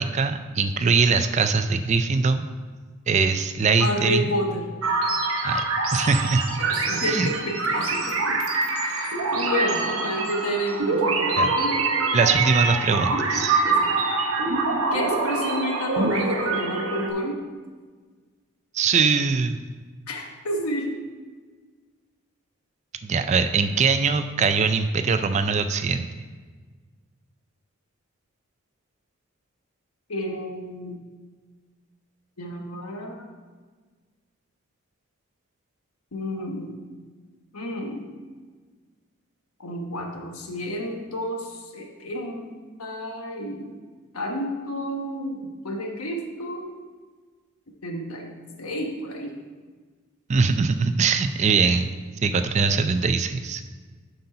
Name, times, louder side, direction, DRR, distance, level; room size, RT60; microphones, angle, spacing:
voice 1, 0.0-2.5 3.1-4.3 5.4-5.6 5.9-6.6 7.1-7.3 11.4-11.5 12.1-13.6 18.7-19.6 23.0-26.1 50.3-51.9 52.2-53.6, right 5 dB, 30° right, 9 dB, 0.3 m, -22 dB
voice 2, 3.8-4.7 6.6-8.4 8.8-11.9 13.6-13.9 14.9-17.4 20.1-20.9 30.1-31.0 32.4-33.3 36.1-36.8 37.5-38.1 39.6-43.7 44.1-46.7 47.8-49.3, equal, 90° left, 2 dB, 1.1 m, -30 dB
sound 1, 4.8-17.1, right 3 dB, 75° right, 0.8 m, -25 dB
7.7 x 4.1 x 5.5 m, 1.5 s
head